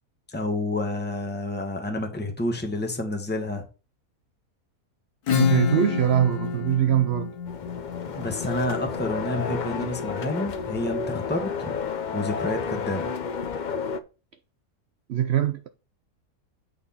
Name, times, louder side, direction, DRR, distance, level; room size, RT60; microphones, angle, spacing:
voice 1, 0.3-3.6 8.2-13.1, left 1 dB, 5° left, 1.2 m, -29 dB
Acoustic guitar / Strum, 5.3-10.6, left 8 dB, 80° left, 1.5 m, -29 dB
voice 2, 5.3-7.3 15.1-15.7, right 10 dB, 65° right, 0.6 m, -22 dB
sound 1, 7.5-14.0, left 5 dB, 55° left, 0.5 m, -31 dB
8.7 x 4.2 x 5.6 m
omnidirectional pair, 1.6 m